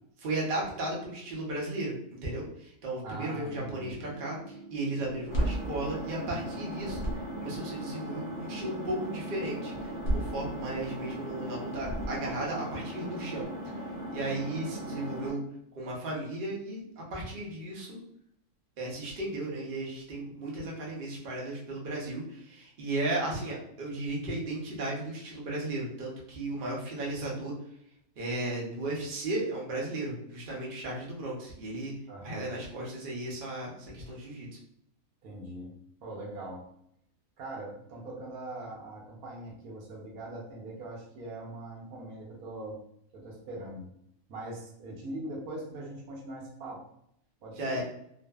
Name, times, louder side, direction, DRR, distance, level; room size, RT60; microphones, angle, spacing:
voice 1, 0.2-13.5 14.1-15.4 15.7-18.0 18.8-27.5 28.2-32.0 32.2-34.6 47.6-47.8, right 2 dB, 45° right, -3 dB, 0.7 m, -35 dB
voice 2, 3.0-3.9 32.1-32.5 35.2-36.7 37.4-42.8 43.1-43.9 44.3-46.8 47.4-47.8, right 1 dB, 80° right, -1 dB, 1.2 m, -41 dB
sound 1, 3.5-13.5, right 4 dB, 80° left, 1.1 m, -48 dB
sound 2, 5.0-6.5 6.8-7.6 9.7-11.0 11.7-12.5, right 1 dB, 50° left, 0.7 m, -33 dB
Engine, 5.3-15.3, equal, 10° left, 0.5 m, -39 dB
2.5 x 2.5 x 2.2 m, 0.73 s
omnidirectional pair, 1.5 m